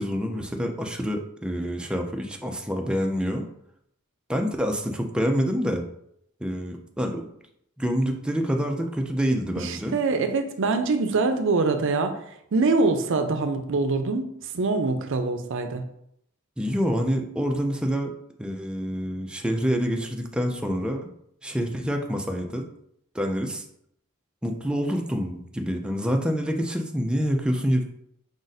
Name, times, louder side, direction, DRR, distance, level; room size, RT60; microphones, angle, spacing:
voice 1, 0.0-3.4 4.3-5.8 6.4-7.3 7.8-10.0 16.6-18.1 18.4-21.1 21.4-22.6 23.1-23.6 24.4-27.8, equal, 5° right, 2 dB, 0.4 m, -27 dB
voice 2, 9.6-12.2 12.5-14.2 14.5-15.8, right 3 dB, 65° right, 8 dB, 0.5 m, -24 dB
5.0 x 2.5 x 4.0 m, 0.72 s
head